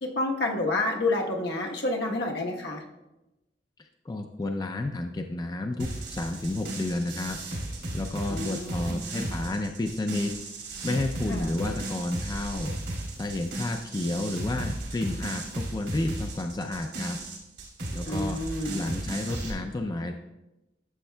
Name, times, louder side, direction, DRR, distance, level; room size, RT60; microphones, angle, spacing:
voice 1, 0.0-2.8 8.3-9.1 11.3-11.5 18.1-18.9, left 2 dB, 70° left, 0 dB, 1.1 m, -29 dB
voice 2, 3.8-7.4 7.9-10.4 10.8-12.7 13.2-17.2 17.9-18.4 18.7-20.1, left 2 dB, 25° left, 4 dB, 0.4 m, -31 dB
sound 1, 5.8-19.5, right 1 dB, 85° right, 2.5 m, -35 dB
12.5 x 7.3 x 2.2 m, 0.99 s
head